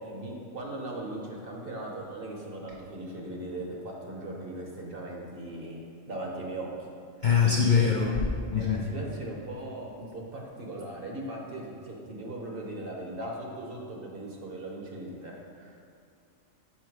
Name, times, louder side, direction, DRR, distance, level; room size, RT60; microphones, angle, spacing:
voice 1, 0.0-5.8 6.1-6.7 7.4-8.2 8.6-15.8, right 1 dB, 45° right, -1 dB, 1.1 m, -38 dB
voice 2, 7.2-8.8, left 6 dB, 55° left, -2 dB, 0.5 m, -23 dB
6.0 x 5.6 x 4.6 m, 2.4 s
omnidirectional pair, 1.4 m